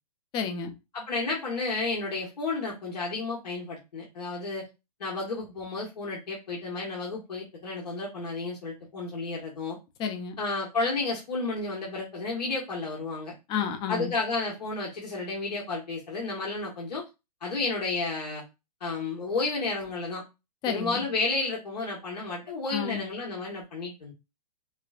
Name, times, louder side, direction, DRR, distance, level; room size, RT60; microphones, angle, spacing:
voice 1, 0.3-0.7 10.0-10.3 13.5-14.1 20.6-21.1 22.7-23.1, left 6 dB, 20° left, 0.6 m, -31 dB
voice 2, 0.9-4.7 5.0-9.8 10.4-13.3 13.9-17.0 17.4-18.4 18.8-20.2 20.7-24.1, left 3 dB, 75° left, 1.5 m, -32 dB
5.2 x 2.2 x 2.5 m
hypercardioid pair, 140°, 21 cm